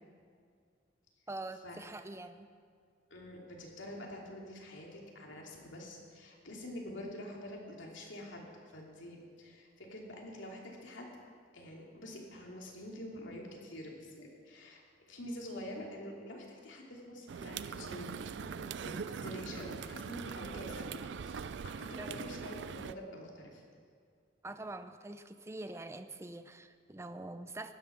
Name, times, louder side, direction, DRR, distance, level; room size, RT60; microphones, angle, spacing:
voice 1, 1.3-2.5 22.0-22.1 24.4-27.7, right 2 dB, 15° right, 9 dB, 0.5 m, -44 dB
voice 2, 3.1-11.1 11.5-23.6, left 1 dB, 80° left, -1 dB, 2.8 m, -47 dB
sound 1, 17.3-22.9, right 6 dB, 65° right, 0.4 m, -42 dB
15.5 x 11.0 x 5.9 m, 2.2 s
head